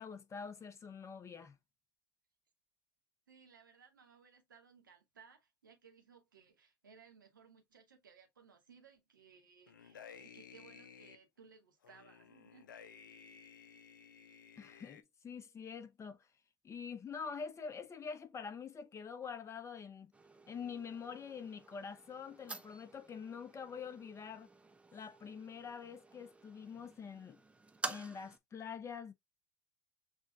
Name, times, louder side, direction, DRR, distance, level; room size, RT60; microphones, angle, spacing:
voice 1, 0.0-1.6 14.6-16.2 16.6-20.1 20.5-24.5 24.9-27.4 27.9-29.1, left 6 dB, 30° left, 0.9 m, -46 dB
voice 2, 3.3-12.7, right 6 dB, 85° right, 0.9 m, -62 dB
sound 1, 9.7-11.2 11.8-15.0, left 7 dB, 80° left, 0.5 m, -56 dB
sound 2, 20.1-28.4, right 3 dB, 10° right, 0.7 m, -50 dB
6.3 x 2.4 x 2.5 m
hypercardioid pair, 75°, 10 cm